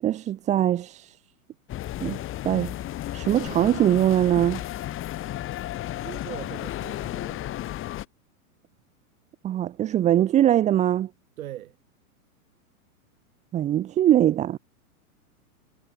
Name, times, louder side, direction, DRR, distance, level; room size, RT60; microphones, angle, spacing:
voice 1, 0.0-1.2 2.0-2.2 2.4-2.7 3.1-4.6 9.4-11.1 13.5-14.6, right 11 dB, 15° right, 0.7 m, -22 dB
sound 1, 1.7-8.1, left 14 dB, 25° left, 3.8 m, -33 dB
voice 2, 6.0-7.6 11.4-11.8, right 13 dB, 65° right, 4.5 m, -41 dB
hypercardioid pair, 135°, 44 cm